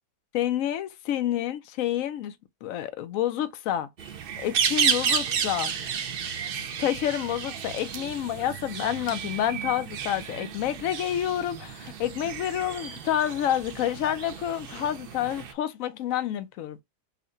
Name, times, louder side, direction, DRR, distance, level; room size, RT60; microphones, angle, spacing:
voice 1, 0.3-2.3 2.6-3.9 4.4-5.7 6.8-16.8, left 11 dB, 65° left, 0.9 m, -28 dB
sound 1, 4.0-15.5, right 7 dB, 70° right, 0.5 m, -32 dB
5.6 x 2.2 x 2.5 m
omnidirectional pair, 1.7 m